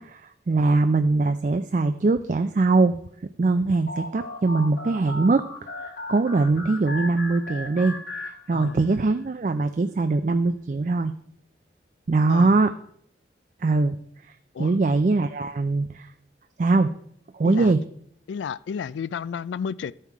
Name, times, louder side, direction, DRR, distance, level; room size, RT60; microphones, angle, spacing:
voice 1, 0.0-3.0 3.4-5.4 5.8-11.1 12.1-12.7 13.6-14.0 14.6-16.1 16.6-16.9 17.3-17.8, right 3 dB, 45° right, 0.4 m, -22 dB
sound 1, 3.9-9.0, left 2 dB, 65° left, 1.4 m, -37 dB
voice 2, 18.3-19.9, left 6 dB, 85° left, 0.3 m, -32 dB
13.0 x 5.6 x 4.7 m
head